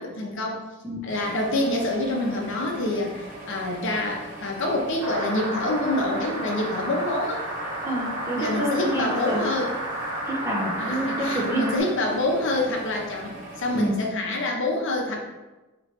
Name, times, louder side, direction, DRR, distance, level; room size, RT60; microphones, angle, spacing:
voice 1, 0.0-0.7 1.0-7.4 8.4-9.7 10.8-15.2, left 1 dB, 60° left, 1 dB, 0.7 m, -26 dB
sound 1, 1.1-13.9, right 1 dB, 40° right, 1.0 m, -41 dB
sound 2, 5.0-11.8, right 1 dB, 70° right, 1.0 m, -32 dB
voice 2, 7.8-9.4 10.3-11.7 13.7-14.0, right 1 dB, 15° right, -2 dB, 0.7 m, -27 dB
3.2 x 3.0 x 4.3 m, 1.1 s
head